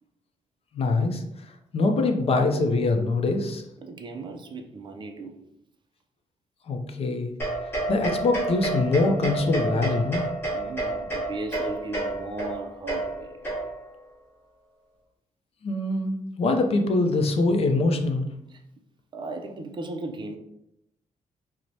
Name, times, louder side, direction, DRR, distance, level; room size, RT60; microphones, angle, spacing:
voice 1, 0.7-3.6 6.7-7.3 7.9-10.3 15.6-18.3, left 3 dB, 50° left, 0.5 m, -24 dB
voice 2, 3.8-5.3 7.1-7.2 10.5-13.4 18.5-18.6 19.1-20.4, right 2 dB, 40° right, 0.4 m, -36 dB
sound 1, 7.4-14.0, right 2 dB, 20° left, 1.2 m, -30 dB
4.5 x 2.1 x 2.7 m
cardioid pair, 130°, 13 cm